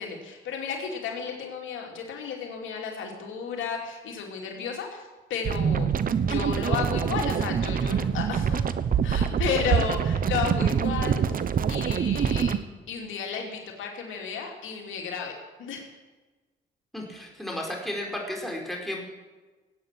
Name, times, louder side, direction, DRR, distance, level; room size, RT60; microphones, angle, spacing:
voice 1, 0.0-5.9 6.3-8.6 9.0-11.4 11.7-12.5 12.9-15.3 15.6-15.8, left 6 dB, 75° left, 1 dB, 2.8 m, -33 dB
sound 1, 5.4-12.6, right 7 dB, 45° right, 0.9 m, -25 dB
voice 2, 16.9-19.0, left 1 dB, ahead, -1 dB, 4.6 m, -33 dB
17.5 x 8.8 x 7.5 m, 1.3 s
cardioid pair, 90°, 20 cm